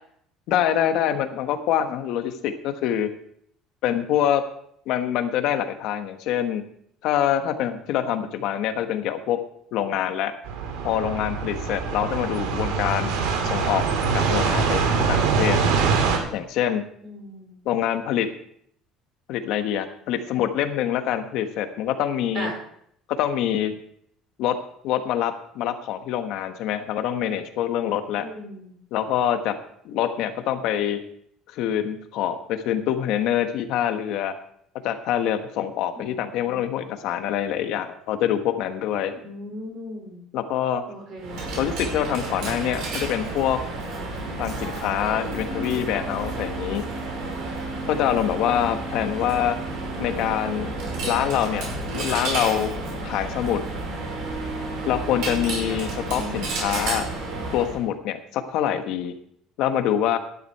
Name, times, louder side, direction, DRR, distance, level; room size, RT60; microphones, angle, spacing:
voice 1, 0.5-3.1 3.8-4.4 4.9-6.6 7.0-9.4 9.7-10.3 10.8-13.1 13.4-13.9 14.1-15.6 16.3-16.8 17.6-18.3 19.3-22.5 23.1-23.7 24.4-24.6 24.8-28.3 28.9-29.6 29.8-31.0 31.5-34.4 34.8-39.1 40.3-40.8 41.6-43.6 44.4-46.8 47.8-49.6 50.0-50.7 51.0-52.7 53.0-53.6 54.8-57.1 57.5-59.1 59.6-60.2, left 10 dB, 55° left, 8 dB, 1.3 m, -25 dB
sound 1, 10.4-16.2, right 5 dB, 85° right, 2.5 m, -23 dB
voice 2, 17.0-17.6 22.3-22.5 28.1-28.7 36.0-36.6 39.1-40.2 40.9-41.5 48.3-49.1 49.9-50.2 56.1-56.4, equal, 40° right, 0 dB, 4.7 m, -38 dB
Coin (dropping), 41.2-57.8, right 2 dB, 55° right, 5.3 m, -31 dB
12.5 x 11.0 x 4.7 m, 0.68 s
cardioid pair, 175°, 0 cm